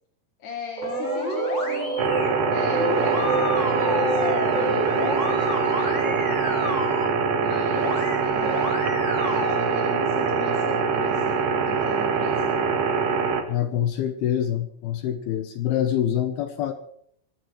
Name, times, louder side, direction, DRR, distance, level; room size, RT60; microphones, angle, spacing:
voice 1, 0.4-2.1 2.5-6.9 7.4-8.8 9.2-12.6, left 5 dB, 50° left, 0 dB, 2.8 m, -39 dB
sound 1, 0.8-2.3 2.7-7.0 7.7-8.2 8.4-9.5, left 1 dB, 20° left, 2.3 m, -30 dB
sound 2, 0.8-6.5, right 2 dB, 40° right, 6.4 m, -29 dB
sound 3, 2.0-13.4, right 5 dB, 75° right, 1.6 m, -24 dB
voice 2, 13.5-16.7, left 10 dB, 80° left, 8 dB, 2.3 m, -25 dB
22.5 x 16.5 x 3.2 m, 0.67 s
omnidirectional pair, 5.4 m